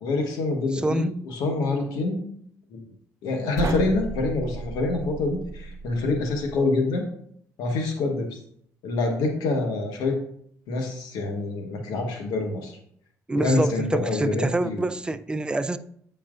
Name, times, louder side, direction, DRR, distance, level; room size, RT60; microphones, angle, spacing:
voice 1, 0.0-2.2 2.7-2.8 3.2-7.0 7.6-8.3 8.8-10.2 10.7-12.8 13.3-14.8, left 3 dB, 90° left, 2 dB, 1.2 m, -26 dB
voice 2, 0.8-1.1 13.3-15.8, right 2 dB, 15° right, 12 dB, 0.4 m, -26 dB
sound 1, 3.5-6.6, right 3 dB, 50° right, 0.7 m, -34 dB
8.5 x 5.5 x 2.5 m, 0.66 s
cardioid pair, 100°, 7 cm